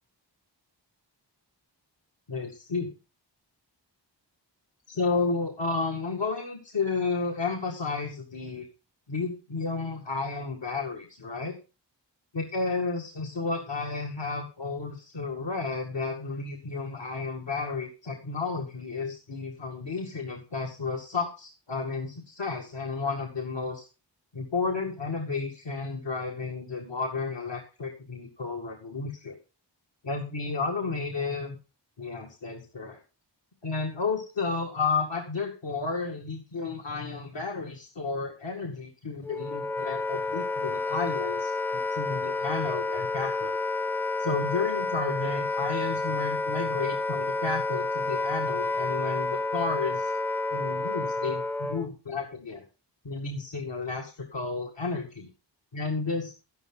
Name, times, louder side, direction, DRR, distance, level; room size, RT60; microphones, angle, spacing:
voice 1, 2.3-2.9 4.9-8.7 9.1-11.5 12.3-23.9 24.3-29.4 30.0-31.6 32.0-33.0 33.6-41.5 41.9-43.6 44.2-50.1 50.5-52.6 53.0-55.3 55.7-56.3, left 4 dB, 75° left, 1 dB, 2.2 m, -32 dB
Wind instrument woodwind instrument, 39.2-51.9, left 3 dB, 5° left, 0.5 m, -30 dB
12.0 x 11.0 x 3.9 m, 0.32 s
wide cardioid pair, 65°, 44 cm